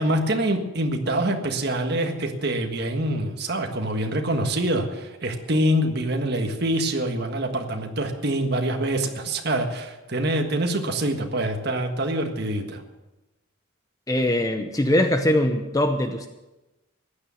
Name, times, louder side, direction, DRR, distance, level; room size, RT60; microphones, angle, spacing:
voice 1, 0.0-12.8, right 1 dB, 50° right, 4 dB, 1.6 m, -25 dB
voice 2, 14.1-16.3, left 1 dB, 15° left, 7 dB, 0.7 m, -22 dB
15.0 x 9.9 x 7.1 m, 1.0 s
head